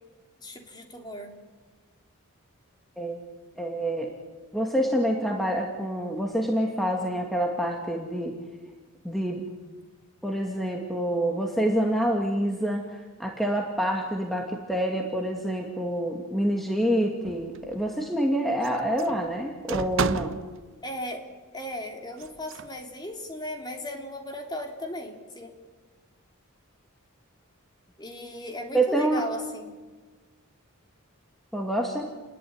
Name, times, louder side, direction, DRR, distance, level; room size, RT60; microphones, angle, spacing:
voice 1, 0.4-1.4 20.8-21.3 21.5-25.6 28.0-29.7, left 1 dB, 20° left, 3 dB, 3.5 m, -36 dB
voice 2, 3.6-4.1 4.5-8.4 9.0-9.4 10.2-20.4 28.7-29.2 31.5-32.1, right 1 dB, ahead, 1 dB, 2.2 m, -27 dB
sound 1, 17.3-17.9 18.6-20.6 22.2-22.7, right 4 dB, 60° right, 0.8 m, -32 dB
29.5 x 21.0 x 9.8 m, 1.3 s
head